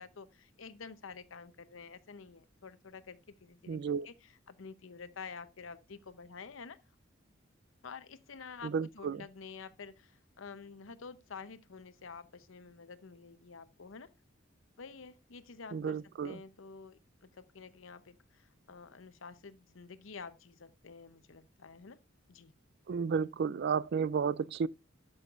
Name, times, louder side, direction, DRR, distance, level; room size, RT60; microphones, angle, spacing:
voice 1, 0.0-3.8 4.0-6.8 7.8-14.1 14.8-16.0 16.2-22.0 22.3-22.5, left 5 dB, 80° left, 0.7 m, -49 dB
voice 2, 3.7-4.1 8.6-9.2 15.7-16.4 22.9-24.7, right 6 dB, 55° right, 0.3 m, -32 dB
11.5 x 6.3 x 2.4 m
head